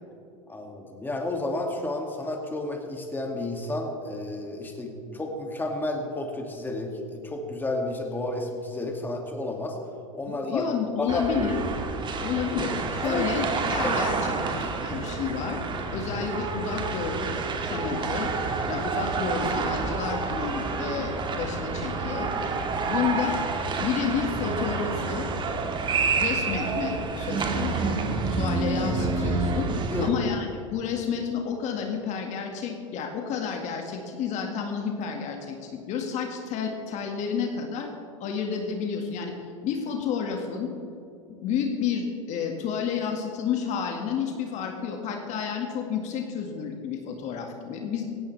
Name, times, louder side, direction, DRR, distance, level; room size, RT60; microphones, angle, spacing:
voice 1, 0.5-9.8 10.1-10.7 11.0-11.2 13.0-13.2 13.8-14.0 14.3-14.5 15.9-16.1 29.9-30.2, left 2 dB, 10° left, 1 dB, 2.3 m, -31 dB
voice 2, 10.3-11.6 12.2-15.6 15.9-17.3 17.6-18.3 18.7-22.3 22.9-23.4 23.8-25.3 26.2-28.0 28.3-29.7 30.0-37.9 38.2-39.3 39.6-40.7 41.4-48.0, left 6 dB, 45° left, 2 dB, 1.9 m, -30 dB
sound 1, 11.1-30.1, right 4 dB, 30° right, 1.8 m, -28 dB
17.0 x 17.0 x 3.4 m, 2.7 s
hypercardioid pair, 90°, 17 cm